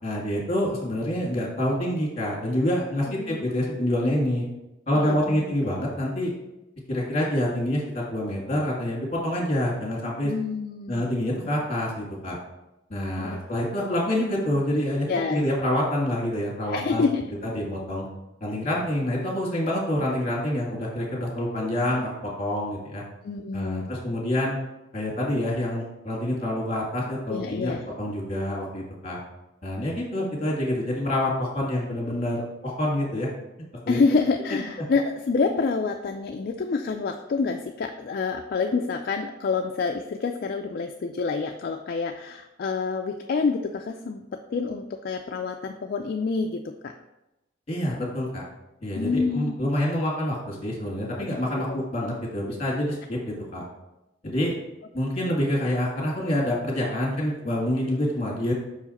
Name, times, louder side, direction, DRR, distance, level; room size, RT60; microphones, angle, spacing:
voice 1, 0.0-4.5 4.9-6.3 6.9-10.3 10.9-12.4 12.9-17.0 17.4-18.1 18.4-23.0 23.5-24.6 24.9-27.7 28.0-29.2 29.6-33.3 33.9-34.0 47.7-48.4 48.8-53.6 54.2-54.5 54.9-58.5, left 1 dB, 35° left, -4 dB, 2.1 m, -27 dB
voice 2, 3.1-3.6 4.9-5.5 10.2-11.1 13.2-13.4 15.1-15.4 16.7-17.2 23.2-23.9 27.3-27.8 33.9-46.9 48.9-49.5 51.2-51.3 51.6-51.8, left 4 dB, 50° left, 5 dB, 0.4 m, -27 dB
5.8 x 4.8 x 4.1 m, 0.96 s
head